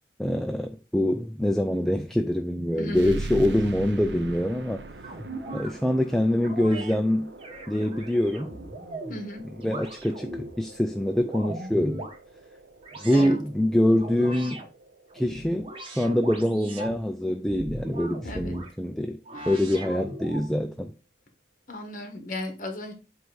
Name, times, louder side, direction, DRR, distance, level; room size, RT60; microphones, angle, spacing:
voice 1, 0.2-4.8 5.5-7.3 7.7-8.5 9.6-12.0 13.0-14.6 15.1-19.2 19.5-20.9, left 1 dB, ahead, 0.3 m, -25 dB
voice 2, 2.8-3.2 9.1-9.5 13.1-13.4 18.2-18.6 19.4-19.5 21.7-22.9, left 1 dB, 50° left, 1.3 m, -35 dB
sound 1, 2.9-18.0, right 3 dB, 80° right, 0.6 m, -43 dB
sound 2, 5.0-5.7 6.4-6.9 7.4-9.2 9.6-10.5 11.0-12.2 12.8-13.4 14.0-14.6 15.1-17.0 17.5-18.7 19.2-20.5, right 1 dB, 30° right, 1.1 m, -38 dB
7.7 x 2.7 x 4.8 m
head